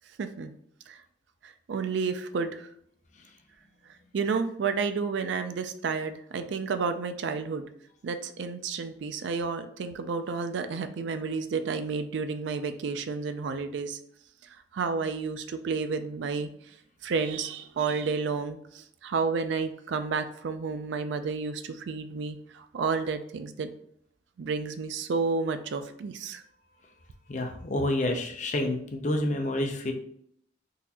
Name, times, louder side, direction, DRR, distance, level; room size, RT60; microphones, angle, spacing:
voice 1, 0.2-0.5 1.7-2.7 4.1-7.7 8.0-14.0 14.7-16.5 17.0-23.7 24.4-26.4, right 5 dB, 65° right, 9 dB, 0.3 m, -31 dB
voice 2, 27.3-29.9, left 1 dB, 40° left, 3 dB, 0.5 m, -28 dB
3.9 x 2.5 x 2.8 m, 0.67 s
head